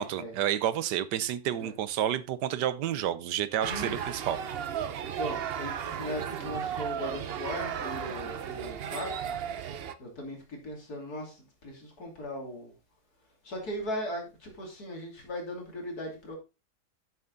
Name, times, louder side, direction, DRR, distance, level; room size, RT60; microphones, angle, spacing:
voice 1, 0.0-4.4, right 11 dB, 85° right, 1.4 m, -30 dB
voice 2, 3.6-4.3 5.2-9.3 10.0-12.7 13.4-16.4, equal, 65° left, 3.3 m, -38 dB
sound 1, 3.6-9.9, right 8 dB, 65° right, 0.5 m, -35 dB
8.4 x 7.0 x 3.8 m
omnidirectional pair, 1.8 m